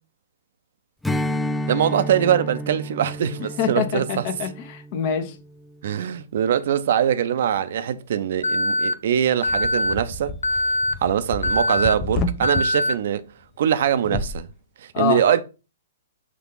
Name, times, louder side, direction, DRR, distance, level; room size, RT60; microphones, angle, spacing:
Strum, 1.0-5.8, equal, 5° left, 0.3 m, -30 dB
voice 1, 1.7-4.3 5.8-10.8 11.0-13.3 13.6-14.5 14.8-15.4, right 9 dB, 60° right, 0.6 m, -22 dB
voice 2, 3.6-5.3 14.9-15.2, left 8 dB, 45° left, 1.1 m, -25 dB
Alarm, 8.4-8.9 9.4-9.9 10.4-10.9 11.4-11.9 12.4-12.9, left 1 dB, 90° left, 0.4 m, -22 dB
sound 1, 9.5-12.6 14.0-14.4, left 3 dB, 30° left, 0.7 m, -30 dB
6.1 x 2.8 x 5.5 m
hypercardioid pair, 125°, 0 cm